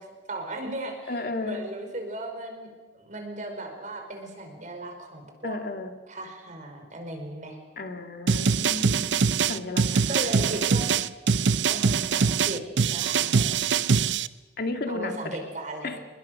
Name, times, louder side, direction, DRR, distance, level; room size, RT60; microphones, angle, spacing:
voice 1, 0.3-2.7 2.9-5.6 6.1-7.6 10.1-10.9 11.7-12.6 12.9-13.8 14.9-16.0, right 1 dB, 45° right, 4 dB, 5.2 m, -36 dB
voice 2, 1.1-1.6 5.4-5.9 7.8-9.2 9.5-10.6 14.6-15.1 15.8-16.0, left 2 dB, 55° left, 5 dB, 2.1 m, -33 dB
sound 1, 8.3-14.3, right 5 dB, 85° right, 0.6 m, -23 dB
28.5 x 21.0 x 6.6 m, 1.4 s
head